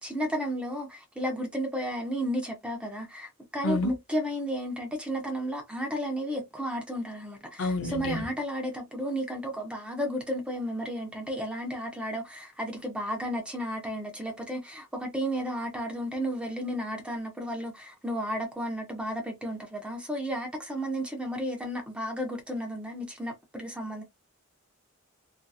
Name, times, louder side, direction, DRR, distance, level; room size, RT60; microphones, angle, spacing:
voice 1, 0.0-24.0, equal, 5° right, 0.5 m, -33 dB
voice 2, 7.6-8.3, left 2 dB, 70° left, 0.6 m, -29 dB
2.7 x 2.4 x 2.3 m
head